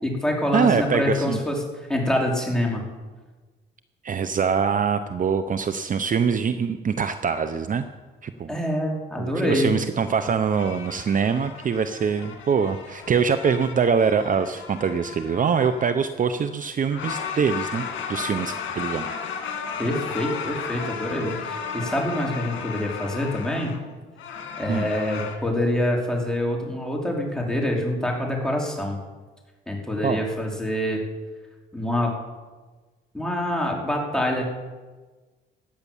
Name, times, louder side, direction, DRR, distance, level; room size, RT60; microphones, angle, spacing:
voice 1, 0.0-1.6 1.9-2.8 8.5-9.7 19.8-23.7 24.6-29.0 29.7-31.0 31.7-32.1 33.1-34.4, left 1 dB, 5° left, -1 dB, 4.0 m, -25 dB
voice 2, 0.5-1.4 4.0-7.9 8.2-8.5 9.2-19.1 24.7-24.9 30.0-30.2, right 6 dB, 40° right, 10 dB, 0.8 m, -24 dB
sound 1, 10.5-16.0 16.9-23.9 24.2-25.4, left 6 dB, 75° left, 2.3 m, -34 dB
17.0 x 10.5 x 7.2 m, 1.3 s
cardioid pair, 90°, 20 cm